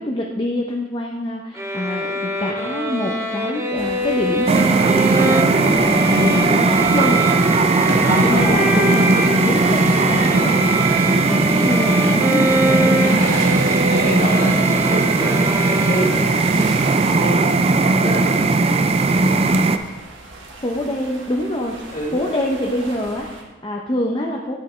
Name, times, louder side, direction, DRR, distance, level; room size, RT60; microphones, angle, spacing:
voice 1, 0.0-9.1 9.4-10.7 11.3-12.8 20.6-24.6, left 1 dB, 25° left, -1 dB, 0.6 m, -26 dB
sound 1, 1.5-16.5, right 1 dB, 15° right, 0.8 m, -24 dB
sound 2, 3.8-23.4, right 2 dB, 80° right, 1.5 m, -37 dB
sound 3, 4.5-19.8, right 3 dB, 30° right, 0.4 m, -17 dB
voice 2, 8.0-8.9 13.1-18.8 21.9-22.2, equal, 40° left, -2 dB, 1.8 m, -28 dB
10.0 x 8.3 x 3.2 m, 1.2 s
head